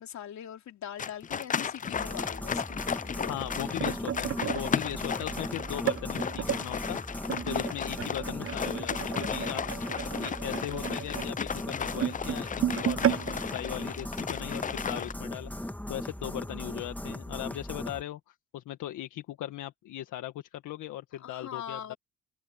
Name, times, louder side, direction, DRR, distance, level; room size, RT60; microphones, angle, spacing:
voice 1, 0.0-3.3 21.2-22.0, left 9 dB, 65° left, 3.3 m, -42 dB
sound 1, 1.0-15.1, left 7 dB, 25° left, 0.5 m, -35 dB
sound 2, 1.9-18.0, left 1 dB, 5° left, 1.7 m, -38 dB
voice 2, 3.3-21.9, left 13 dB, 85° left, 1.7 m, -39 dB
sound 3, 3.3-6.6 7.3-14.6 14.9-15.1 15.4-15.7 16.4-16.5, right 10 dB, 45° right, 0.7 m, -34 dB
cardioid pair, 90°, 30 cm